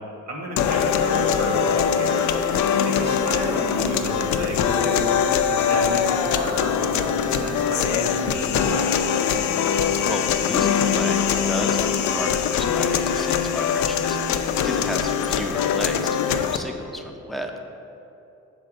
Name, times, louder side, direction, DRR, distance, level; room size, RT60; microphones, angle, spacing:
voice 1, 0.3-2.3 2.8-5.1 5.5-8.9, right 1 dB, 60° right, -1 dB, 1.4 m, -31 dB
sound 1, 0.6-16.6, left 8 dB, 70° left, 0.4 m, -22 dB
voice 2, 9.3-9.7 10.0-17.5, left 1 dB, ahead, 2 dB, 0.5 m, -32 dB
5.8 x 3.9 x 5.1 m, 2.8 s
cardioid pair, 90°, 30 cm